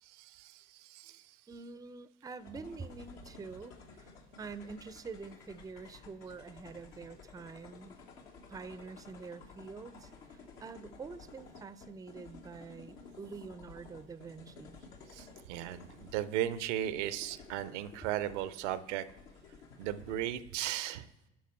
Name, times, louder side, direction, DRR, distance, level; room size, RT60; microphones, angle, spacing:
voice 1, 0.0-1.4 15.1-19.1 19.8-21.1, right 12 dB, 80° right, 15 dB, 0.6 m, -36 dB
voice 2, 1.5-4.1 4.4-8.0 8.5-14.8, right 4 dB, 10° right, 16 dB, 0.4 m, -46 dB
sound 1, 2.4-20.3, left 4 dB, 75° left, 1.2 m, -54 dB
10.5 x 5.0 x 4.3 m, 0.99 s
hypercardioid pair, 60°, 36 cm